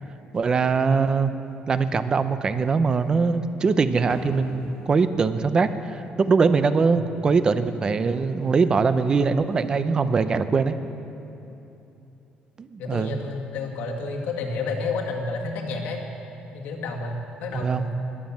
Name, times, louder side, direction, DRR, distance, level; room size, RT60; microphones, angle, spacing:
voice 1, 0.3-1.3 1.7-10.8 12.6-13.2 17.5-17.9, right 4 dB, 25° right, 11 dB, 0.6 m, -22 dB
sound 1, 4.1-10.8, left 2 dB, 20° left, 1.4 m, -47 dB
voice 2, 12.8-16.0 16.5-17.9, left 3 dB, 90° left, 0 dB, 1.9 m, -30 dB
21.0 x 7.4 x 7.3 m, 2.9 s
cardioid pair, 155°, 3 cm